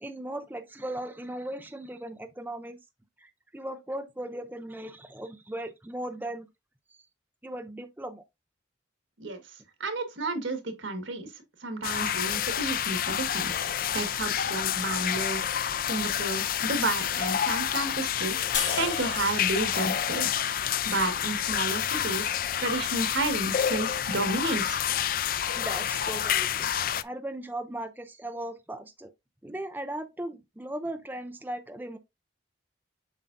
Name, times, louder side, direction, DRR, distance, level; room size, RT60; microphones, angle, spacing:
voice 1, 0.0-2.8 3.2-6.5 7.4-8.2 11.8-12.0 25.5-26.7 27.0-29.1 29.4-32.0, right 1 dB, 10° right, 0.5 m, -37 dB
voice 2, 9.8-11.3 11.6-15.5 15.8-18.4 18.8-24.8, right 2 dB, 85° right, 1.7 m, -32 dB
sound 1, 11.8-27.0, left 9 dB, 50° left, 0.3 m, -29 dB
sound 2, 18.5-21.8, left 6 dB, 80° left, 2.1 m, -36 dB
7.3 x 5.5 x 2.6 m
head